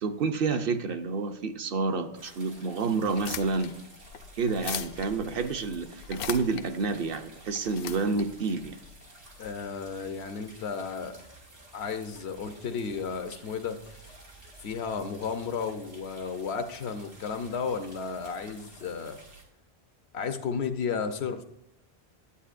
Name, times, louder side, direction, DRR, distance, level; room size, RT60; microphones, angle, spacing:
voice 1, 0.0-3.7 4.4-8.8, right 4 dB, 65° right, 7 dB, 0.8 m, -29 dB
sound 1, 2.1-19.4, right 2 dB, 85° right, 2.2 m, -52 dB
sound 2, 3.0-9.5, left 8 dB, 65° left, 0.7 m, -40 dB
voice 2, 9.4-11.2 11.7-14.1 14.6-19.2 20.1-21.4, left 5 dB, 85° left, 8 dB, 1.0 m, -33 dB
9.8 x 8.7 x 2.5 m, 0.84 s
omnidirectional pair, 1.1 m